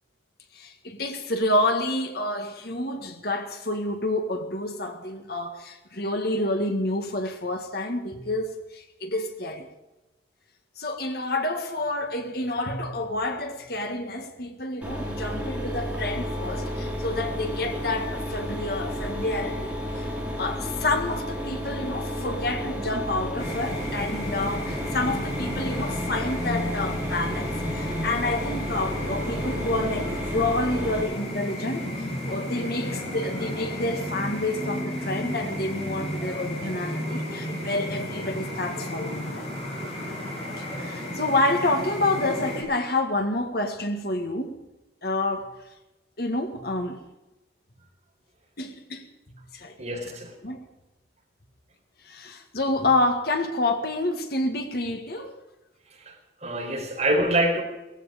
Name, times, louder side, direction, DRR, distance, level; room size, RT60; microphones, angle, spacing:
voice 1, 0.5-9.7 10.8-20.1 20.4-39.5 40.6-44.6 45.0-45.5 46.2-47.0 48.6-49.1 49.5-49.8 50.1-50.2 50.4-50.6 52.0-55.4 56.5-56.9, left 2 dB, 55° left, 1.9 m, -28 dB
Mechanisms, 14.8-31.0, equal, 5° right, 3.3 m, -32 dB
sound 1, 23.4-42.6, left 1 dB, 35° left, 7.5 m, -33 dB
voice 2, 49.8-50.3 56.0-56.1 56.4-57.6, right 1 dB, 40° right, 4.4 m, -25 dB
18.5 x 15.0 x 5.2 m
head